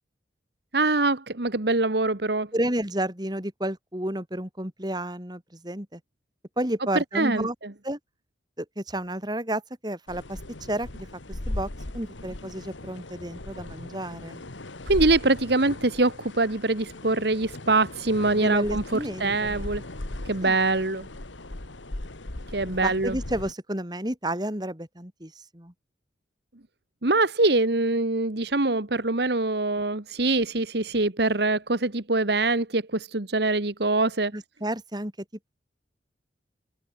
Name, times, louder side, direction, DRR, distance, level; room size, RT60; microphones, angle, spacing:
voice 1, 0.7-2.5 6.9-7.7 14.8-19.8 20.3-21.1 22.5-23.2 27.0-34.3, right 2 dB, 60° right, 1.6 m, -24 dB
voice 2, 2.5-6.0 6.6-7.5 7.8-8.0 8.6-11.1 11.5-14.4 18.4-19.6 20.4-20.6 22.8-25.7 34.3-35.1, right 1 dB, 20° right, 3.5 m, -31 dB
sound 1, 10.1-23.5, left 1 dB, 90° left, 2.1 m, -38 dB
head